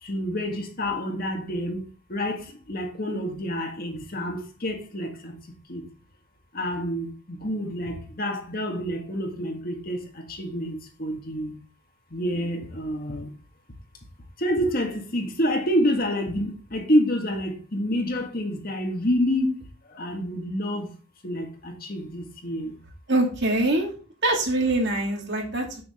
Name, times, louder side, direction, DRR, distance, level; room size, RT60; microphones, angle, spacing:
voice 1, 0.0-5.3 5.7-5.8 6.5-11.5 12.1-13.3 14.4-20.9 21.2-22.7, equal, 45° left, 1.8 m, -28 dB
voice 2, 23.1-23.9 24.2-25.8, right 2 dB, 55° right, 2.7 m, -24 dB
7.9 x 7.1 x 3.7 m
head